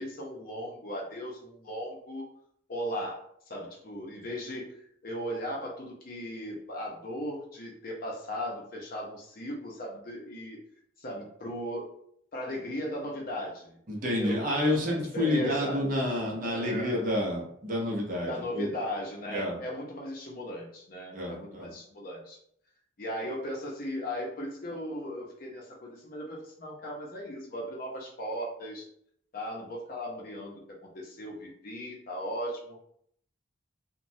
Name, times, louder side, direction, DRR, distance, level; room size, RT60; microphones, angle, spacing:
voice 1, 0.0-2.2 2.7-3.2 3.5-4.7 5.0-10.6 11.0-11.9 12.3-13.8 14.1-15.8 16.4-17.1 18.2-22.4 23.0-28.9 29.3-32.8, equal, 45° left, -1 dB, 0.6 m, -37 dB
voice 2, 13.9-18.7 19.3-19.6 21.1-21.7, left 1 dB, 40° right, -2 dB, 0.7 m, -29 dB
3.0 x 2.2 x 2.6 m, 0.68 s
head